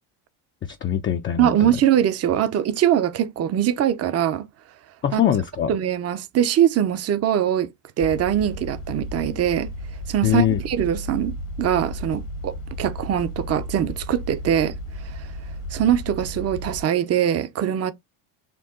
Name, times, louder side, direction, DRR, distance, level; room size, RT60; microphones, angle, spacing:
voice 1, 0.7-1.8 5.0-5.7 10.2-10.6, left 10 dB, 25° left, 0.4 m, -22 dB
voice 2, 1.4-4.5 5.1-5.2 5.7-7.7 8.0-9.7 10.1-14.8 15.7-17.9, right 10 dB, 35° right, 0.5 m, -22 dB
sound 1, 8.0-16.8, equal, 65° left, 1.3 m, -34 dB
4.6 x 2.3 x 3.6 m
cardioid pair, 110°, 47 cm